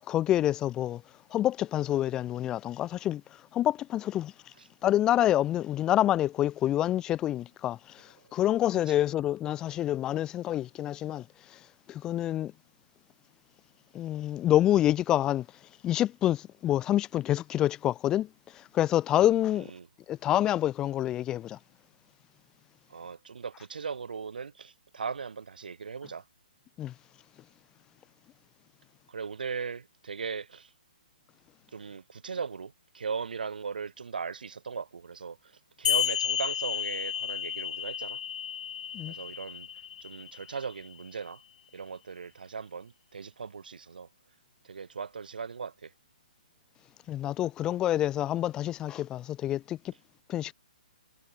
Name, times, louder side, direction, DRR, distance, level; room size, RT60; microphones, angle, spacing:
voice 1, 0.1-1.0 1.3-3.2 3.5-4.3 4.8-7.8 8.3-11.2 11.9-12.5 13.9-15.5 15.8-18.3 18.7-19.7 20.1-21.6 26.8-26.9 38.9-39.1 47.1-49.8 50.3-50.5, left 12 dB, 15° left, 0.7 m, -27 dB
voice 2, 22.9-26.2 29.1-30.7 31.7-35.4 35.8-38.2 39.1-39.7 40.0-41.4 41.7-44.1 44.7-45.9, right 5 dB, 85° right, 2.4 m, -38 dB
sound 1, 35.8-40.9, left 9 dB, 55° left, 3.0 m, -32 dB
hypercardioid pair, 160°, 5 cm